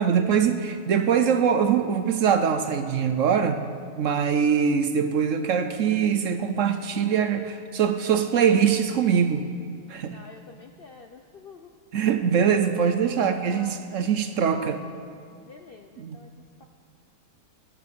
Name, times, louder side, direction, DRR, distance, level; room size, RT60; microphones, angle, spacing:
voice 1, 0.0-3.6 4.0-9.4 9.9-10.2 11.9-14.8 16.0-16.2, right 7 dB, 60° right, 9 dB, 0.9 m, -23 dB
voice 2, 10.1-11.7 12.8-13.8 15.4-16.6, left 4 dB, 55° left, 5 dB, 0.6 m, -47 dB
19.5 x 7.0 x 6.8 m, 2.4 s
omnidirectional pair, 1.7 m